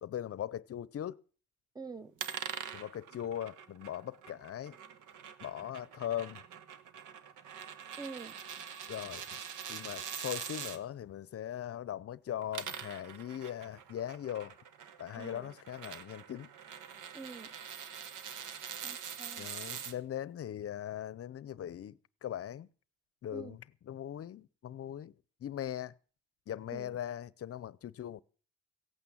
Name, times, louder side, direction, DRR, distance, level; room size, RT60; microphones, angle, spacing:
voice 1, 0.0-1.2 2.7-4.8 5.4-6.4 8.9-9.4 9.7-14.5 15.0-16.5 19.4-22.7 23.2-25.1 25.4-25.9 26.5-28.2, left 10 dB, 50° left, 0.7 m, -40 dB
voice 2, 1.7-2.1 8.0-8.4 15.2-15.5 17.1-17.5 18.8-19.5 23.3-23.6 26.7-27.0, right 4 dB, 15° right, 0.9 m, -46 dB
sound 1, 2.2-10.8 12.3-19.9, right 8 dB, 85° right, 1.3 m, -44 dB
17.0 x 8.7 x 7.1 m
cardioid pair, 90°, 30 cm